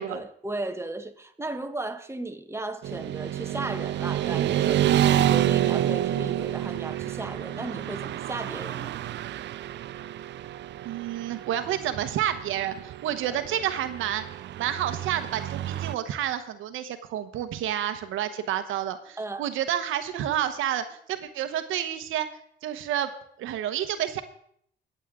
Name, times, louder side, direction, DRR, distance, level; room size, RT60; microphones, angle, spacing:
voice 1, 0.0-9.1 13.3-13.4 19.2-19.4, right 2 dB, 15° right, 1.3 m, -36 dB
Motorcycle / Traffic noise roadway noise, 2.8-15.9, right 12 dB, 65° right, 0.5 m, -28 dB
voice 2, 10.8-14.2 14.6-22.3 22.6-23.1 23.4-24.2, right 11 dB, 85° right, 1.1 m, -29 dB
24.0 x 8.2 x 3.7 m
cardioid pair, 90°, 20 cm